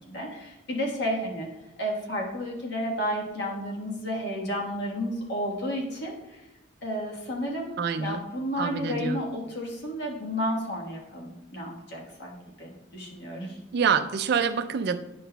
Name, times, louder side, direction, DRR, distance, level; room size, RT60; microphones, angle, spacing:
voice 1, 0.1-1.5 1.8-6.4 6.8-12.3 12.6-13.6, equal, 60° left, -1 dB, 1.3 m, -32 dB
voice 2, 7.8-8.2 8.6-9.2 13.7-15.0, right 6 dB, 55° right, 11 dB, 0.3 m, -26 dB
9.2 x 5.8 x 2.2 m, 0.98 s
head